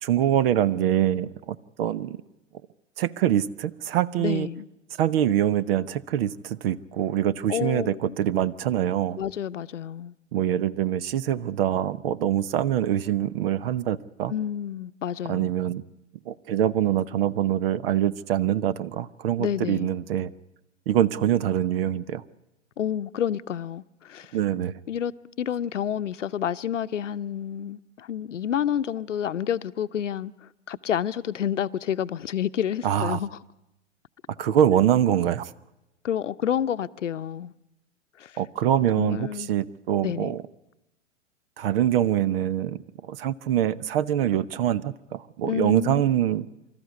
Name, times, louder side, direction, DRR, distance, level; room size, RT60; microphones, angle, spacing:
voice 1, 0.0-2.2 3.0-4.5 5.0-9.2 10.3-14.3 15.3-15.8 16.3-20.3 20.9-22.2 24.3-24.8 32.8-33.2 34.4-35.5 38.4-40.4 41.6-42.8 43.1-46.5, right 11 dB, 50° right, 0.9 m, -24 dB
voice 2, 4.2-4.7 7.5-8.2 9.2-10.1 14.3-15.5 19.4-19.9 22.8-24.3 24.9-25.1 25.4-30.3 30.7-33.4 36.0-37.5 38.2-38.3 39.0-39.5 40.0-40.4 45.5-46.0, left 9 dB, 80° left, 0.8 m, -29 dB
25.5 x 13.5 x 9.5 m
figure-of-eight pair, 105°, 36 cm